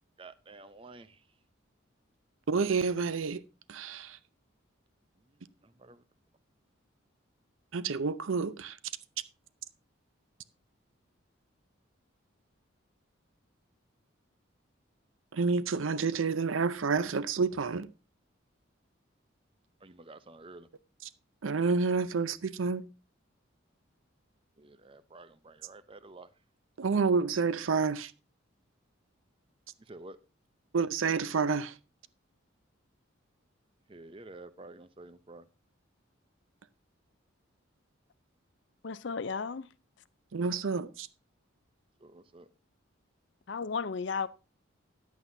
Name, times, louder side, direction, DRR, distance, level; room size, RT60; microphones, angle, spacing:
voice 1, 0.2-1.2 5.6-6.0 19.8-20.7 24.6-26.3 29.8-30.2 33.9-35.5 42.0-42.5, right 2 dB, 25° right, 0.6 m, -50 dB
voice 2, 2.5-3.4 3.7-4.2 7.7-8.8 15.3-17.9 21.4-22.8 26.8-28.1 30.7-31.7 40.3-41.1, right 4 dB, 75° right, 0.6 m, -29 dB
voice 3, 38.8-39.7 43.5-44.3, left 5 dB, 60° left, 0.5 m, -34 dB
14.0 x 9.4 x 2.7 m
head